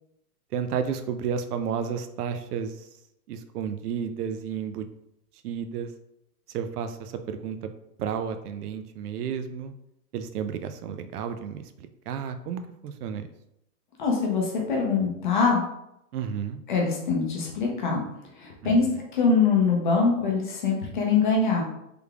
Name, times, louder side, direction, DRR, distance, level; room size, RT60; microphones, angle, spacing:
voice 1, 0.5-2.9 3.3-4.9 5.4-5.9 6.5-7.7 8.0-9.7 10.1-13.3 16.1-16.6 18.6-18.7, right 7 dB, 75° right, 9 dB, 0.5 m, -32 dB
voice 2, 14.0-15.6 16.7-18.0 18.4-18.9 19.1-21.6, left 4 dB, 35° left, -1 dB, 0.5 m, -23 dB
3.4 x 3.3 x 2.3 m, 0.81 s
hypercardioid pair, 160°, 46 cm